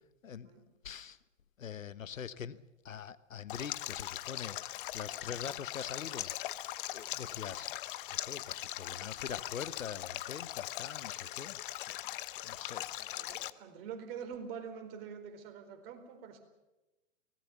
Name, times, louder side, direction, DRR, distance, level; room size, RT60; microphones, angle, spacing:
voice 1, 0.8-1.2 1.6-6.3 6.9-7.7 8.2-11.6 12.4-13.2, left 7 dB, 85° left, 1.2 m, -44 dB
Stream, 3.5-13.5, left 15 dB, 40° left, 0.9 m, -40 dB
voice 2, 13.1-16.4, right 7 dB, 45° right, 4.4 m, -45 dB
23.5 x 18.5 x 7.1 m
hypercardioid pair, 130°, 39 cm